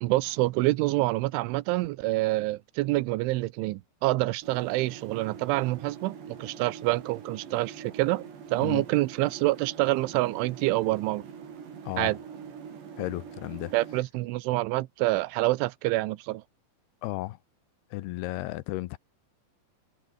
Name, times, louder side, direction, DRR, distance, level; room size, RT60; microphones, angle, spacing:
voice 1, 0.0-8.3 8.5-11.3 12.0-12.2 13.7-16.4, right 19 dB, 90° right, 3.3 m, -27 dB
sound 1, 4.4-14.0, right 7 dB, 70° right, 6.3 m, -44 dB
voice 2, 11.8-12.2 13.0-13.7 17.0-17.4 17.9-19.0, left 18 dB, 75° left, 2.5 m, -34 dB
omnidirectional pair, 5.3 m